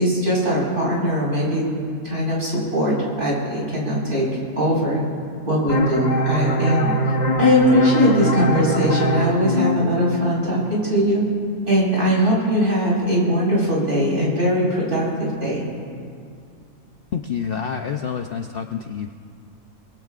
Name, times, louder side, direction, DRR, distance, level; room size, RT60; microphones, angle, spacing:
voice 1, 0.0-1.6 2.0-4.3 4.6-5.0 5.5-7.0 7.4-11.2 11.7-15.7, equal, 55° right, -6 dB, 5.2 m, -20 dB
sound 1, 5.7-11.1, left 1 dB, 35° left, 1.0 m, -22 dB
voice 2, 17.1-19.1, left 7 dB, 60° left, 5 dB, 0.6 m, -28 dB
24.0 x 21.0 x 2.5 m, 2.3 s
omnidirectional pair, 1.5 m